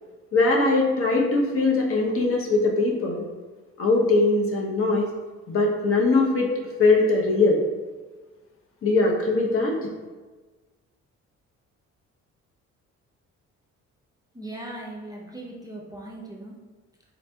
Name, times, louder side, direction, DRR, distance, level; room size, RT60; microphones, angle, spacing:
voice 1, 0.3-3.2 3.8-5.1 5.5-6.5 6.8-7.6 8.8-9.7, left 3 dB, 45° left, -1 dB, 0.7 m, -21 dB
voice 2, 14.3-16.5, right 1 dB, 15° right, -3 dB, 0.4 m, -38 dB
4.0 x 2.6 x 2.2 m, 1.3 s
cardioid pair, 90°, 30 cm